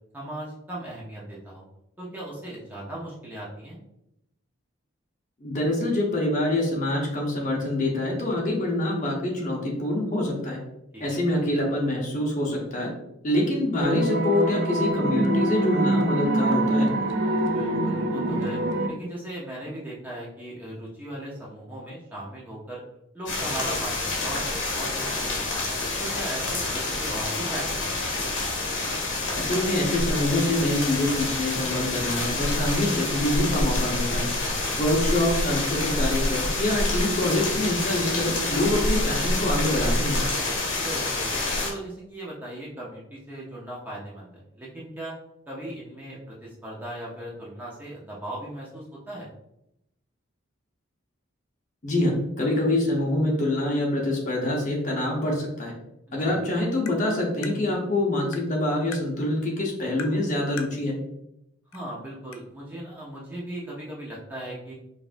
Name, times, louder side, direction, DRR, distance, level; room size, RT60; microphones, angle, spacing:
voice 1, 0.1-1.6 2.0-3.8 10.9-11.2 17.3-18.6 18.9-22.8 23.1-24.9 25.2-25.6 26.0-27.9 34.6-34.9 40.8-41.3 41.6-45.1 45.5-49.3 56.2-56.3 61.7-64.7, right 1 dB, 10° right, -6 dB, 0.7 m, -38 dB
voice 2, 5.4-10.6 11.0-12.9 13.2-16.9 29.4-34.3 34.8-40.2 51.8-55.7 56.1-60.9, left 1 dB, 35° left, -2 dB, 0.9 m, -25 dB
sound 1, 13.8-18.9, right 1 dB, 60° right, 0.5 m, -24 dB
sound 2, 23.3-41.7, left 2 dB, 70° left, 1.3 m, -27 dB
Tap, 56.9-57.0 57.4-57.6 58.3-58.5 58.9-59.1 60.0-60.2 60.6-60.8 61.7-61.8 62.3-62.4, left 6 dB, 85° left, 0.5 m, -38 dB
5.0 x 2.6 x 2.5 m, 0.82 s
head